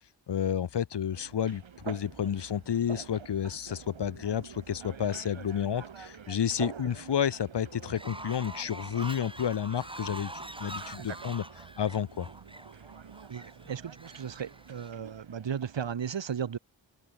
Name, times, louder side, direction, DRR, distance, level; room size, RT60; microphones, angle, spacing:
voice 1, 0.3-10.3 10.6-11.4 11.8-12.3, left 9 dB, 65° left, 0.9 m, -31 dB
sound 1, 1.1-15.9, right 7 dB, 85° right, 5.7 m, -47 dB
Fowl, 7.9-14.9, right 1 dB, 10° right, 2.9 m, -44 dB
voice 2, 11.0-11.3 13.3-16.6, right 8 dB, 70° right, 1.6 m, -36 dB
cardioid pair, 65°, 46 cm